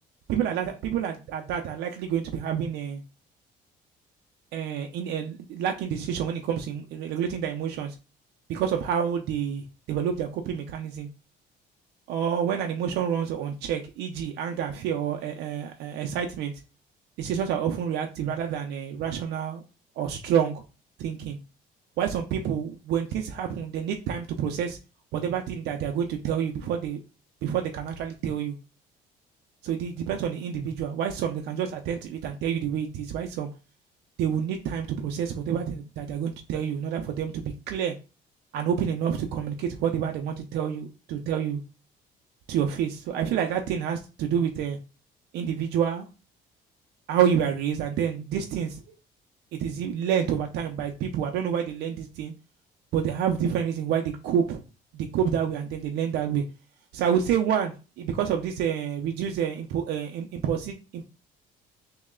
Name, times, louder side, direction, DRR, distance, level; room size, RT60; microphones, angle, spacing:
voice 1, 0.3-3.0 4.5-7.9 8.5-11.1 12.1-16.5 17.2-19.6 20.0-20.6 21.0-21.4 22.0-24.8 25.1-27.0 27.4-28.5 29.6-33.5 34.2-37.9 38.5-41.6 42.5-44.8 45.3-46.1 47.1-48.8 49.5-52.3 52.9-54.6 54.9-56.4 56.9-61.1, right 8 dB, 80° right, 0.6 m, -28 dB
3.1 x 2.8 x 3.6 m
cardioid pair, 110°, 17 cm